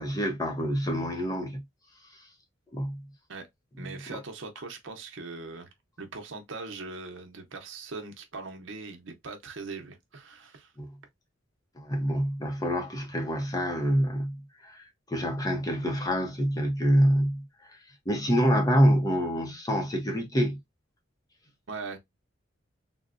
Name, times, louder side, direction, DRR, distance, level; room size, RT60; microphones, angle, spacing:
voice 1, 0.0-1.6 2.7-3.0 3.8-4.2 10.8-10.9 11.8-17.5 18.1-20.6, equal, 20° left, 0.7 m, -26 dB
voice 2, 3.8-5.7 6.0-10.7 21.7-22.0, right 3 dB, 70° right, 0.8 m, -40 dB
3.8 x 2.1 x 2.4 m
head